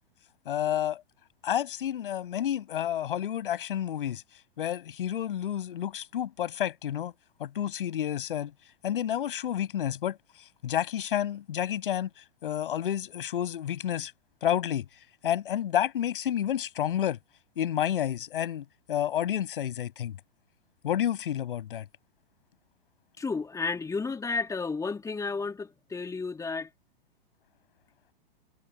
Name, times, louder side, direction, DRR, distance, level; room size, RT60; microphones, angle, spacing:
voice 1, 0.5-1.0 1.4-4.2 4.6-7.1 7.4-8.5 8.8-10.2 10.6-12.1 12.4-14.1 14.4-14.9 15.2-17.2 17.6-20.2 20.8-21.9, left 10 dB, 65° left, 6.9 m, -30 dB
voice 2, 23.2-26.7, left 4 dB, 10° left, 3.6 m, -32 dB
figure-of-eight pair, 110°, 29 cm